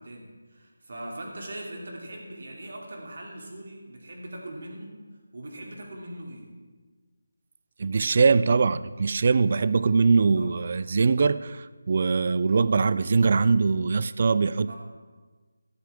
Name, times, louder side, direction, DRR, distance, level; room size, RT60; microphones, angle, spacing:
voice 1, 0.0-4.9 5.3-6.5 10.4-10.6 14.7-14.8, right 1 dB, 55° right, -1 dB, 2.8 m, -40 dB
voice 2, 7.8-14.8, right 4 dB, 35° right, 16 dB, 0.3 m, -22 dB
14.0 x 11.5 x 3.6 m, 1.4 s
figure-of-eight pair, 170°, 0 cm